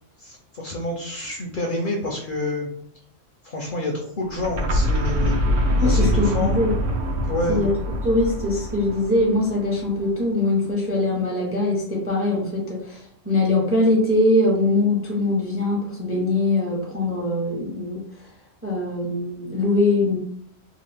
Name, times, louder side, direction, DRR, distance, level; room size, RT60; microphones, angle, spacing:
voice 1, 0.2-2.7 3.4-5.4 5.8-6.5 7.3-7.6, left 2 dB, 60° left, 0 dB, 0.6 m, -28 dB
sound 1, 4.3-10.1, equal, 75° right, 0.9 m, -24 dB
voice 2, 5.8-6.7 7.5-7.7 8.0-18.0 18.6-20.2, left 2 dB, 20° right, -1 dB, 0.4 m, -22 dB
2.8 x 2.5 x 3.2 m, 0.63 s
omnidirectional pair, 1.3 m